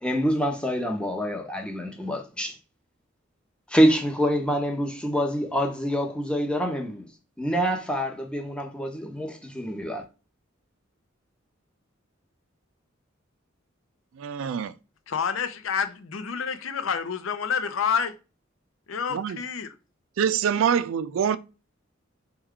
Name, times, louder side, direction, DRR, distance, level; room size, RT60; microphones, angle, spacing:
voice 1, 0.0-2.6 3.7-7.1 7.4-10.0, equal, 5° left, 0.7 m, -26 dB
voice 2, 14.2-14.7 19.1-19.4 20.2-21.4, right 8 dB, 80° right, 0.3 m, -25 dB
voice 3, 15.1-18.1 18.9-19.8, left 6 dB, 85° left, 0.6 m, -28 dB
4.3 x 2.3 x 3.6 m
head